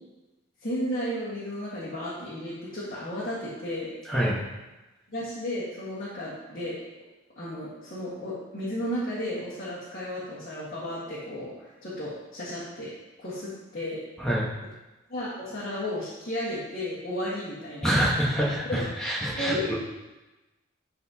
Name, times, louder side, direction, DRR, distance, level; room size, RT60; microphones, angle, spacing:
voice 1, 0.6-4.0 5.1-6.8 7.4-12.9 13.2-14.0 15.1-18.0 18.7-18.9 19.4-19.7, left 1 dB, 45° left, -10 dB, 1.7 m, -33 dB
voice 2, 17.8-19.7, equal, 5° left, -5 dB, 1.4 m, -26 dB
12.0 x 4.2 x 2.9 m, 1.1 s
head